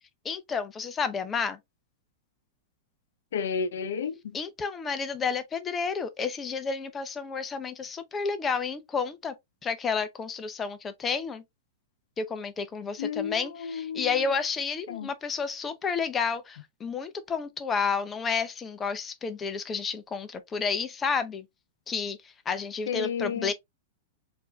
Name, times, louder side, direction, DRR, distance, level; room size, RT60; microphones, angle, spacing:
voice 1, 0.2-1.6 4.3-9.3 9.6-11.4 12.2-21.5 21.9-23.5, left 5 dB, 15° left, 0.5 m, -31 dB
voice 2, 3.3-4.4 13.0-14.2 14.9-15.1 22.9-23.5, left 6 dB, 75° left, 0.6 m, -32 dB
4.5 x 2.6 x 2.3 m
hypercardioid pair, 150°, 0 cm